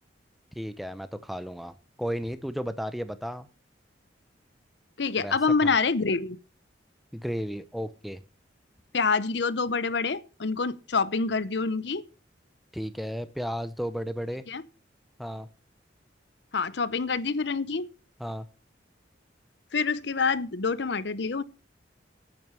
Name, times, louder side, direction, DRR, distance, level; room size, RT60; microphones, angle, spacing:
voice 1, 0.5-3.5 5.2-5.4 5.6-5.7 7.1-8.2 12.7-14.4 15.2-15.5 18.2-18.5, equal, ahead, 0.6 m, -34 dB
voice 2, 5.0-6.4 8.9-12.0 14.5-14.6 16.5-17.9 19.7-21.4, left 4 dB, 65° left, 0.7 m, -26 dB
9.1 x 8.9 x 6.8 m
head